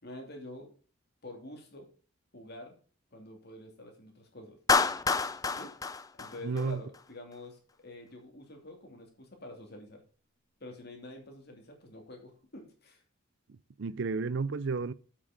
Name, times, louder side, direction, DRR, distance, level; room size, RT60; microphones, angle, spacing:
voice 1, 0.0-0.7 1.2-1.9 2.3-2.7 3.1-4.6 5.5-5.7 6.2-10.0 10.6-13.0, left 1 dB, 50° left, 2.7 m, -47 dB
Clapping, 4.7-7.0, left 4 dB, 15° left, 0.4 m, -28 dB
voice 2, 6.4-6.8 13.5-14.9, right 4 dB, 60° right, 0.5 m, -32 dB
8.2 x 6.3 x 5.1 m
head